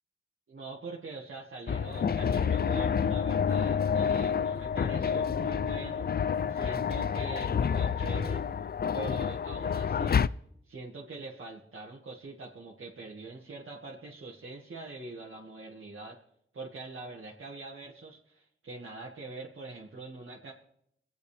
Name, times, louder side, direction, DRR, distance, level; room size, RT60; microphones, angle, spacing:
voice 1, 0.5-6.1 6.5-8.4 8.9-10.3 10.7-16.2 16.5-20.5, right 3 dB, 75° right, -4 dB, 1.8 m, -43 dB
sound 1, 1.7-10.3, left 7 dB, 50° left, 0.4 m, -28 dB
26.0 x 9.3 x 3.4 m, 0.73 s
cardioid pair, 50°, 21 cm